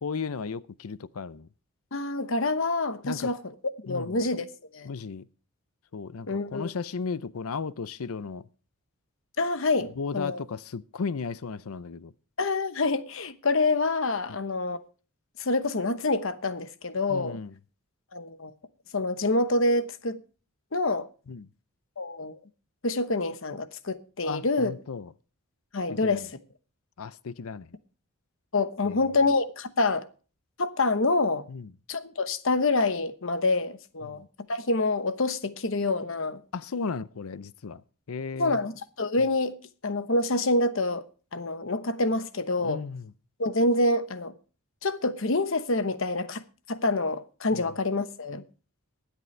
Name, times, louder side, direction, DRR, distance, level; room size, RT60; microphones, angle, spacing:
voice 1, 0.0-1.5 3.0-3.4 3.9-4.2 4.8-5.3 5.9-8.5 10.0-12.1 14.3-14.4 17.1-17.5 21.3-21.5 24.2-25.1 25.9-26.3 27.0-27.7 28.8-29.0 31.5-31.7 34.1-34.3 36.5-37.8 38.1-38.6 42.6-43.1 47.5-47.7, left 5 dB, 75° left, 0.6 m, -35 dB
voice 2, 1.9-3.4 3.9-4.5 4.7-4.9 6.3-6.7 9.4-10.4 12.4-14.8 15.4-17.4 18.1-18.5 18.9-20.2 20.7-21.1 22.0-22.3 22.8-24.7 25.7-26.3 28.5-30.1 30.6-31.5 31.9-34.2 34.5-36.4 38.4-39.6 39.8-41.0 41.3-42.8 43.4-44.3 44.8-48.4, left 2 dB, 60° left, 1.0 m, -27 dB
22.5 x 8.2 x 3.2 m
head